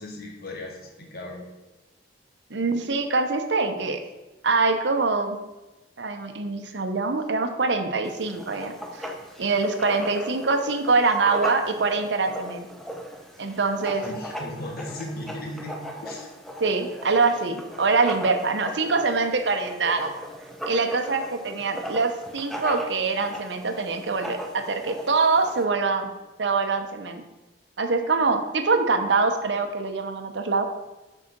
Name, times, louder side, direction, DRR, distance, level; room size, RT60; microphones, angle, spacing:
voice 1, 0.0-1.5 13.9-16.3, left 1 dB, 50° left, 0 dB, 1.4 m, -37 dB
voice 2, 2.5-4.0 4.4-5.4 6.0-9.1 9.4-12.7 13.4-14.0 16.6-20.1 20.7-26.1 26.4-27.2 27.8-30.6, right 4 dB, 70° right, 6 dB, 0.8 m, -24 dB
Writing, 8.0-25.7, equal, ahead, 0.6 m, -38 dB
6.1 x 4.9 x 6.1 m, 1.1 s
head